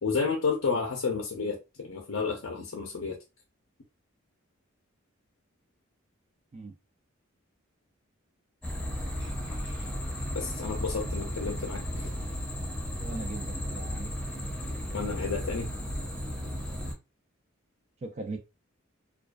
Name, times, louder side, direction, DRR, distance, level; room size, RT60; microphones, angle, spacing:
voice 1, 0.0-3.2 9.2-9.9 10.3-12.2 14.9-15.7, left 5 dB, 70° left, 0.5 m, -32 dB
sound 1, 8.6-16.9, equal, 5° left, 0.7 m, -34 dB
voice 2, 13.0-14.1 18.0-18.4, right 3 dB, 35° right, 0.4 m, -39 dB
2.4 x 2.3 x 2.2 m
head